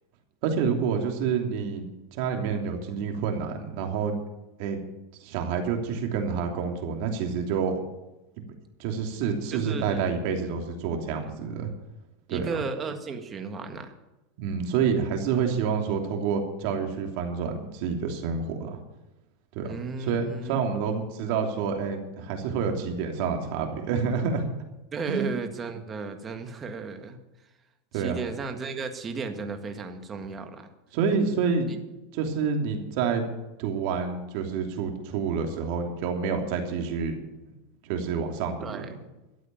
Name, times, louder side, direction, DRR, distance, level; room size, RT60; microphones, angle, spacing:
voice 1, 0.4-4.2 4.6-4.8 5.2-7.8 8.8-11.7 12.3-12.5 14.4-18.8 19.5-19.7 20.0-24.5 25.1-25.2 27.9-28.2 30.9-31.7 32.1-33.2 33.6-37.2 37.8-39.0, right 6 dB, 60° right, 3 dB, 3.0 m, -28 dB
voice 2, 9.5-10.1 12.3-13.9 19.6-20.7 24.9-27.2 27.9-30.7 31.7-31.8 38.6-39.0, right 4 dB, 25° right, 6 dB, 1.7 m, -34 dB
13.0 x 8.2 x 9.0 m, 1.0 s
supercardioid pair, 135°, 0 cm